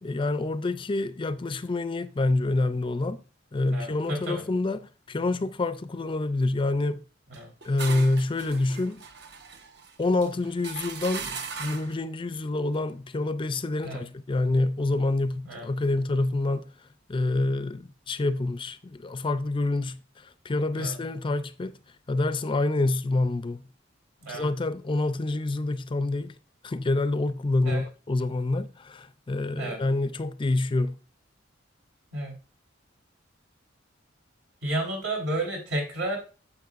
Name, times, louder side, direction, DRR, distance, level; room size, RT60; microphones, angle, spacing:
voice 1, 0.0-3.2 3.5-7.0 7.6-9.0 10.0-16.7 17.1-21.8 22.1-23.6 24.3-26.3 26.6-30.9, left 2 dB, 25° left, 0.4 m, -27 dB
voice 2, 3.7-4.4 7.3-7.5 13.8-14.0 15.4-15.7 20.7-21.0 24.2-24.5 27.6-27.9 29.6-29.8 32.1-32.3 34.6-36.2, right 1 dB, 80° right, 3.8 m, -31 dB
sound 1, 7.3-12.0, right 5 dB, 60° right, 0.9 m, -39 dB
9.3 x 7.5 x 2.5 m
head